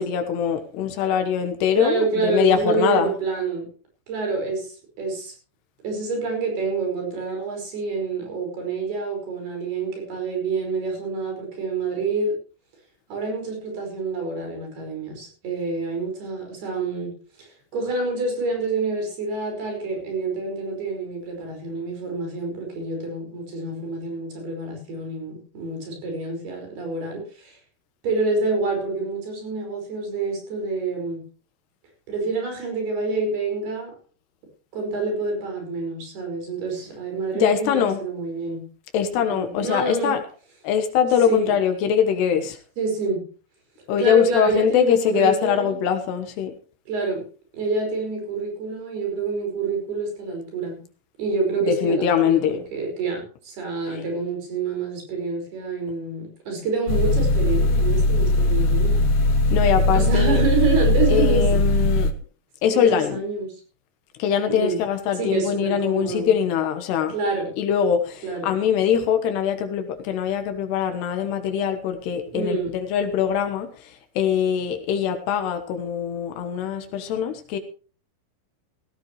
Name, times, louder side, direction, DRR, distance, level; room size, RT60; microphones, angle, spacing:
voice 1, 0.0-3.1 37.4-38.0 38.9-40.2 40.6-42.6 43.9-46.5 51.6-52.6 59.5-60.4 61.1-62.1 62.6-63.2 64.2-67.1 67.6-77.6, left 8 dB, 85° left, 6 dB, 3.5 m, -22 dB
voice 2, 1.7-3.7 4.1-5.3 5.8-12.4 13.1-17.1 17.4-27.6 28.0-31.2 32.1-33.9 34.7-38.6 39.1-40.2 41.3-41.6 42.8-43.2 44.0-45.8 46.9-47.2 47.5-50.8 51.2-52.5 52.7-59.1 59.9-61.5 62.7-63.5 64.5-64.8 65.2-66.3 67.1-67.5 68.2-68.5 72.3-72.7, right 3 dB, 70° right, 2 dB, 7.3 m, -27 dB
sound 1, 56.9-62.1, left 2 dB, 70° left, 1.4 m, -19 dB
16.5 x 14.5 x 3.2 m, 0.39 s
omnidirectional pair, 4.6 m